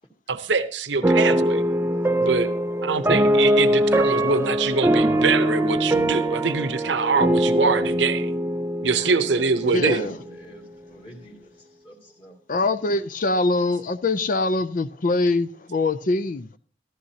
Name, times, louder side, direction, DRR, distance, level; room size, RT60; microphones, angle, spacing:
voice 1, 0.3-1.6 2.2-2.5 2.8-8.3 8.8-10.1, right 4 dB, 75° right, 0.8 m, -24 dB
sound 1, 1.0-10.2, equal, 15° right, 0.5 m, -22 dB
voice 2, 9.1-12.4, equal, 30° left, 2.4 m, -44 dB
voice 3, 9.7-10.2 12.5-16.5, left 2 dB, 45° left, 0.5 m, -23 dB
14.5 x 14.0 x 2.8 m
head